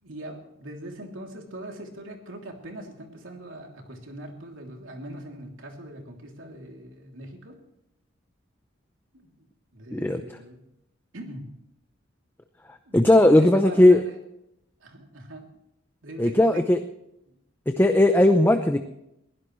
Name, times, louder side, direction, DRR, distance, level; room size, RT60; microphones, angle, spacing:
voice 1, 0.0-7.6 9.1-9.5 9.7-10.6 11.1-11.5 12.8-14.2 14.8-15.5 16.0-16.6 17.3-17.4, right 1 dB, 80° right, 1 dB, 3.1 m, -41 dB
voice 2, 9.9-10.2 12.9-14.0 16.2-16.8 17.7-18.8, left 1 dB, 10° left, 7 dB, 0.7 m, -17 dB
22.0 x 16.0 x 3.2 m, 0.82 s
head